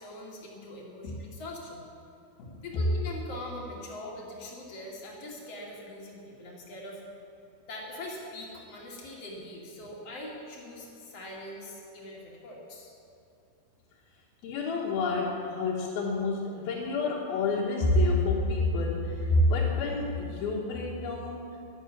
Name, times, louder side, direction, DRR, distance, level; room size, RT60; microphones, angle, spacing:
voice 1, 0.0-1.8 2.6-7.0 7.7-12.9, left 1 dB, 45° left, -3 dB, 3.3 m, -42 dB
voice 2, 14.4-21.7, left 2 dB, 85° left, -5 dB, 3.2 m, -28 dB
11.5 x 11.5 x 8.4 m, 2.8 s
omnidirectional pair, 4.2 m